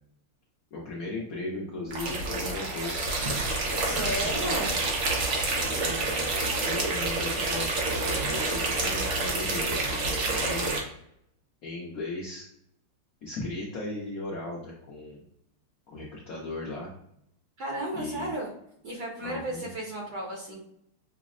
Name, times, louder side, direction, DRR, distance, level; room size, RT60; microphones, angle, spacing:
voice 1, 0.7-3.1 3.9-4.6 5.6-10.7 11.6-12.5 13.2-15.2 15.9-16.9 17.9-18.3 19.2-19.7, left 2 dB, 85° left, -3 dB, 0.7 m, -37 dB
sound 1, 1.9-10.8, right 3 dB, 85° right, 0.7 m, -28 dB
voice 2, 3.7-4.7 17.6-18.5 18.8-20.6, right 1 dB, 65° right, -2 dB, 1.0 m, -33 dB
6.0 x 2.0 x 2.4 m, 0.73 s
omnidirectional pair, 2.4 m